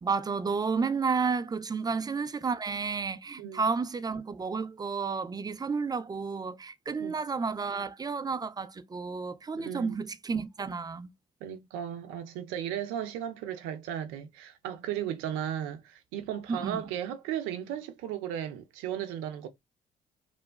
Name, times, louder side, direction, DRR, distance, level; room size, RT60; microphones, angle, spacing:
voice 1, 0.0-11.1 16.5-16.8, right 5 dB, 20° right, 0.4 m, -31 dB
voice 2, 9.5-10.0 11.4-19.5, right 10 dB, 80° right, 0.5 m, -35 dB
3.1 x 2.1 x 2.4 m
hypercardioid pair, 50°, 20 cm